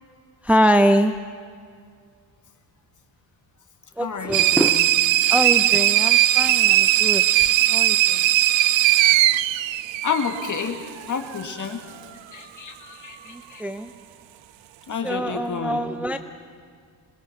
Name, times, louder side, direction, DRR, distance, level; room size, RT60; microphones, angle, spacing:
voice 1, 0.4-1.1 4.0-4.8 5.3-8.2 13.3-13.9 15.0-16.2, equal, 5° right, 8 dB, 0.5 m, -23 dB
voice 2, 4.0-4.9 9.0-9.3 10.0-13.6 14.9-15.8, left 6 dB, 45° left, 5 dB, 2.0 m, -30 dB
sound 1, 4.3-10.7, right 14 dB, 90° right, 0.7 m, -19 dB
22.0 x 21.5 x 5.8 m, 2.1 s
cardioid pair, 125°, 44 cm